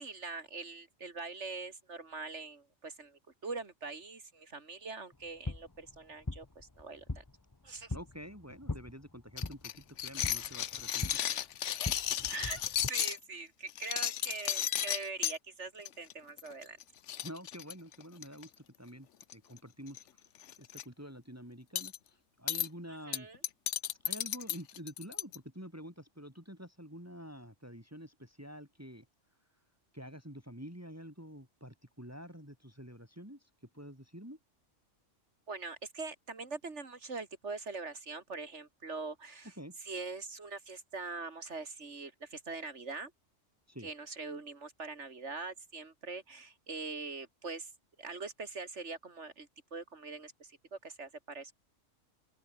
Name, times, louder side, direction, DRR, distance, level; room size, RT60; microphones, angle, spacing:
voice 1, 0.0-7.2 7.6-7.9 12.3-12.6 12.9-16.8 22.9-23.4 35.5-39.5 39.8-43.1 43.8-47.7 48.0-51.5, right 3 dB, 65° right, 2.8 m, -43 dB
sound 1, 5.1-12.9, left 2 dB, 15° left, 1.0 m, -42 dB
voice 2, 7.9-9.7 10.0-11.2 17.2-20.2 20.6-23.3 24.0-29.0 29.9-33.5 33.7-34.4 39.6-39.8 43.7-43.9, equal, 10° right, 5.0 m, -48 dB
sound 2, 9.4-13.2 13.7-15.4 15.8-16.1 16.4-16.5 16.8-16.9 17.1-18.4 19.2-19.6 19.9-20.0 20.4-20.8 21.8-22.0 22.5-22.7 23.1-25.4, left 11 dB, 70° left, 1.1 m, -34 dB
open air
omnidirectional pair, 1.3 m